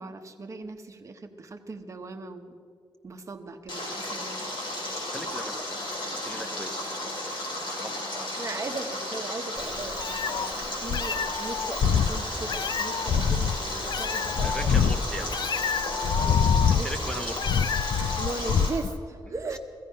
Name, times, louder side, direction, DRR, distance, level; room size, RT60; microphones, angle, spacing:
voice 1, 0.0-2.6 3.0-4.6 8.4-14.7 15.2-15.3 16.1-16.5 16.7-16.9 18.2-19.6, right 3 dB, 35° right, 5 dB, 0.9 m, -38 dB
Stream, 3.7-18.7, left 1 dB, 70° left, 4.6 m, -34 dB
voice 2, 5.1-5.6 6.1-6.8 7.8-8.1 14.4-15.3 16.7-17.5 19.2-19.6, equal, 10° left, 5 dB, 0.9 m, -38 dB
Meow, 9.6-19.0, left 7 dB, 55° left, 0.4 m, -26 dB
15.5 x 15.0 x 5.5 m, 2.2 s
wide cardioid pair, 175°, 9 cm